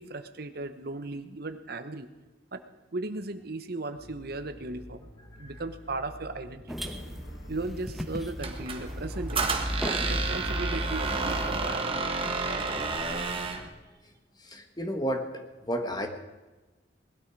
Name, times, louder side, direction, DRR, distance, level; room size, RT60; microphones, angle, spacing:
voice 1, 0.0-2.1 2.5-2.6 2.9-5.1 5.4-6.9 7.5-9.5 9.8-11.8, right 2 dB, 60° right, 9 dB, 1.0 m, -36 dB
sound 1, 3.9-11.0, left 1 dB, 75° left, 2.4 m, -51 dB
sound 2, 6.7-11.7, equal, ahead, 1.2 m, -35 dB
Squeak, 8.4-13.7, right 3 dB, 30° right, 1.6 m, -31 dB
voice 2, 14.4-16.1, equal, 25° left, 5 dB, 1.5 m, -32 dB
19.5 x 13.0 x 4.7 m, 1.2 s
head